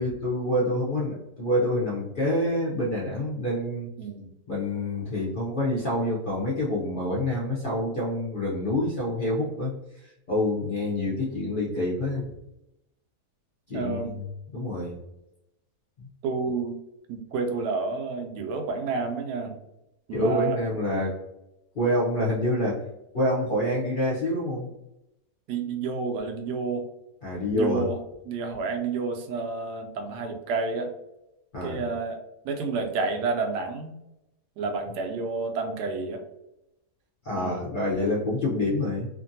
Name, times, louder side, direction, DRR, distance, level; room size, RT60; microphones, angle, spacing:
voice 1, 0.0-3.9 4.5-9.7 10.3-12.3 13.7-14.2 14.5-14.9 16.0-16.1 20.1-21.1 21.7-22.8 23.1-24.7 27.2-27.9 31.5-31.8 37.2-39.1, left 1 dB, 55° left, -6 dB, 0.5 m, -27 dB
voice 2, 13.7-14.1 16.2-16.8 17.1-19.6 20.1-20.6 25.5-26.9 27.6-30.9 31.6-32.2 32.4-33.9 34.6-36.2 37.3-37.7, right 4 dB, 85° right, 4 dB, 1.1 m, -30 dB
2.8 x 2.5 x 2.6 m, 0.88 s
omnidirectional pair, 1.7 m